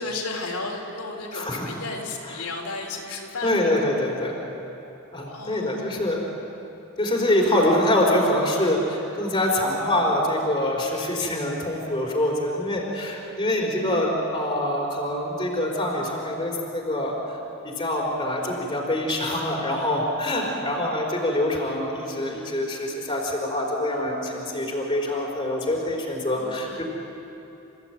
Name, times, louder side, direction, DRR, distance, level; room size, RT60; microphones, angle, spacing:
voice 1, 0.0-3.8 5.3-6.0 13.2-13.8 26.3-26.8, left 3 dB, 90° left, 0 dB, 3.7 m, -34 dB
voice 2, 1.3-1.7 3.4-4.4 5.1-6.2 7.0-17.1 17.6-26.8, left 1 dB, 20° left, -1 dB, 4.3 m, -25 dB
28.5 x 15.5 x 9.2 m, 3.0 s
head